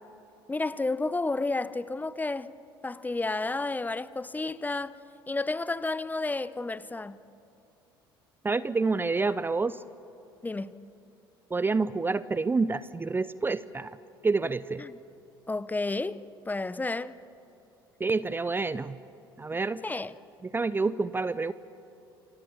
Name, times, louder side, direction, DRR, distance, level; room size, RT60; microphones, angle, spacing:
voice 1, 0.5-2.5 2.8-5.0 5.3-7.2 10.4-10.7 14.8-15.0 15.5-17.1 19.8-20.1, left 3 dB, 15° left, 0.8 m, -31 dB
voice 2, 8.4-9.8 11.5-14.0 14.2-14.8 18.0-19.0 19.4-19.8 20.4-21.5, right 3 dB, 15° right, 0.6 m, -28 dB
28.0 x 25.0 x 7.4 m
figure-of-eight pair, 60°, 12 cm